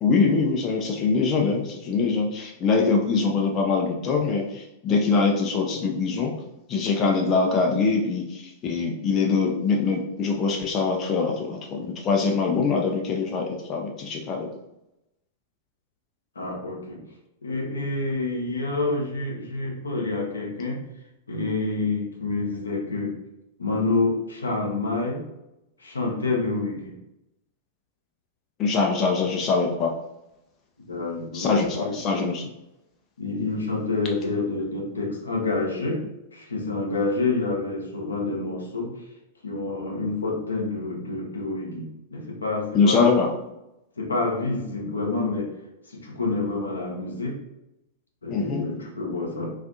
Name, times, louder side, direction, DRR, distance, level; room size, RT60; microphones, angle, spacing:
voice 1, 0.0-6.3 6.7-14.5 28.6-29.9 31.3-32.5 42.7-43.3 48.3-48.6, left 4 dB, 30° left, 1 dB, 0.3 m, -23 dB
voice 2, 16.4-17.0 17.4-20.9 21.3-23.2 23.6-25.2 25.8-26.9 30.9-32.0 33.2-36.0 36.3-38.9 39.4-43.0 44.0-45.5 45.9-47.4 48.2-49.5, left 3 dB, 75° left, 0 dB, 0.6 m, -28 dB
2.4 x 2.3 x 2.5 m, 0.89 s
figure-of-eight pair, 95°, 0 cm